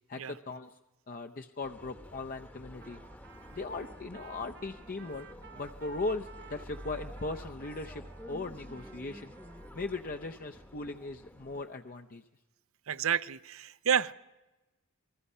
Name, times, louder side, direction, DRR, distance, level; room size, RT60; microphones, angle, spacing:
voice 1, 0.1-0.8 1.1-3.0 3.5-5.3 5.5-9.3 9.7-12.2, left 3 dB, 40° left, 5 dB, 0.7 m, -38 dB
sound 1, 1.6-11.6, equal, 10° left, 1.0 m, -49 dB
Trumpet, 2.8-9.9, right 6 dB, 50° right, 1.1 m, -55 dB
voice 2, 12.9-14.1, right 8 dB, 65° right, 16 dB, 0.6 m, -30 dB
28.0 x 20.5 x 5.5 m, 1.1 s
head